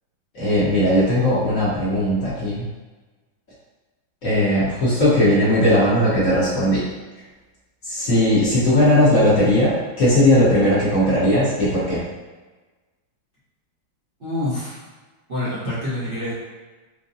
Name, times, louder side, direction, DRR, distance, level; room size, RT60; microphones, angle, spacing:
voice 1, 0.3-2.7 4.2-6.8 7.8-12.0, left 1 dB, 50° left, -10 dB, 1.3 m, -18 dB
voice 2, 14.2-14.8 15.3-16.3, left 1 dB, 40° right, -12 dB, 1.0 m, -26 dB
4.8 x 2.1 x 2.7 m, 1.3 s
omnidirectional pair, 2.0 m